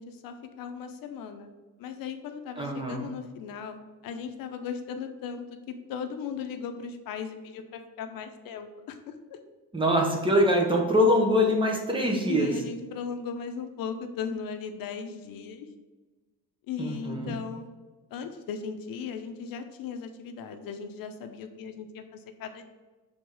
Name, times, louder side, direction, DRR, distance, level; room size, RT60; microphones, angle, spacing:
voice 1, 0.0-1.5 1.8-3.8 4.0-9.4 12.3-15.7 16.7-17.7 18.1-22.6, left 6 dB, 80° left, 7 dB, 0.7 m, -37 dB
voice 2, 2.6-3.1 9.7-12.5 16.8-17.4, equal, 15° right, 1 dB, 0.9 m, -24 dB
6.6 x 3.5 x 4.7 m, 1.2 s
cardioid pair, 160°, 34 cm